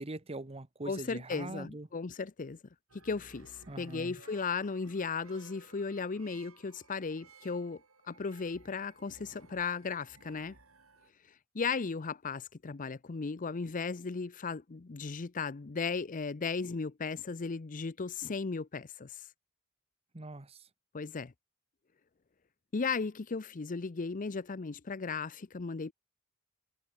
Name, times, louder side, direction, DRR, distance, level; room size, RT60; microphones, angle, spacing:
voice 1, 0.0-1.9 3.7-4.2 20.1-20.7, right 2 dB, 30° right, 1.2 m, -42 dB
voice 2, 0.9-2.6 3.0-7.8 8.1-10.5 11.5-19.2 20.9-21.3 22.7-25.9, left 4 dB, 40° left, 0.6 m, -36 dB
sound 1, 2.9-11.1, right 3 dB, 70° right, 7.5 m, -59 dB
head